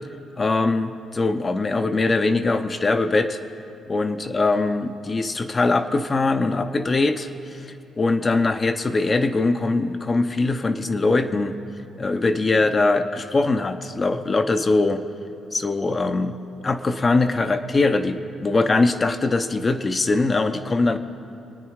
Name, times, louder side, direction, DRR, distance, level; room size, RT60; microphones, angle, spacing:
voice 1, 0.4-3.4 3.9-7.7 8.0-11.6 12.0-15.0 15.5-16.4 16.6-21.0, left 3 dB, 30° left, 9 dB, 0.9 m, -22 dB
24.5 x 9.6 x 4.8 m, 2.7 s
cardioid pair, 90°, 0 cm